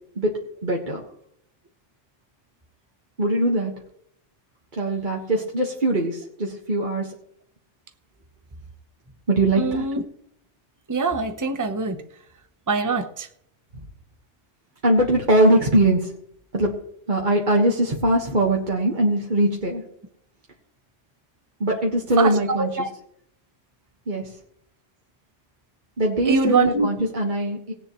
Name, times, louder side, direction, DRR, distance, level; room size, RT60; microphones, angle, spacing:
voice 1, 0.1-1.0 3.2-3.7 4.7-7.1 9.3-9.9 14.8-16.1 16.5-16.8 17.1-19.8 21.6-22.9 24.1-24.4 26.0-27.7, right 1 dB, 40° right, -1 dB, 1.6 m, -21 dB
voice 2, 9.6-10.0 10.9-12.0 12.7-13.3 22.2-22.4 22.8-22.9 26.2-26.9, right 4 dB, 15° right, 7 dB, 0.9 m, -23 dB
18.5 x 9.9 x 3.1 m, 0.70 s
omnidirectional pair, 1.3 m